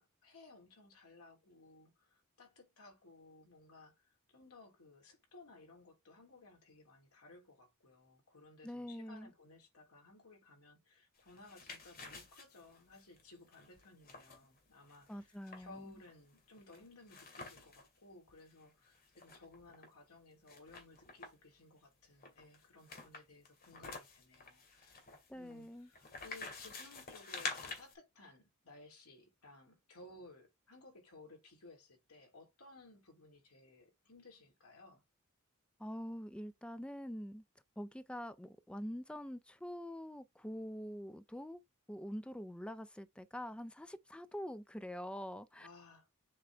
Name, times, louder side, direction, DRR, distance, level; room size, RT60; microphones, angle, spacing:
voice 1, 0.0-24.9 25.3-35.0 45.6-46.1, left 2 dB, 75° left, 3.2 m, -59 dB
voice 2, 8.6-9.3 15.1-15.8 25.3-25.9 35.8-37.4 37.8-41.6 41.9-45.7, equal, 5° left, 0.4 m, -45 dB
sound 1, 11.2-17.9 18.3-18.4 18.6-19.9 20.5-21.5 22.2-27.9, left 4 dB, 45° left, 2.3 m, -49 dB
7.6 x 4.5 x 3.4 m
head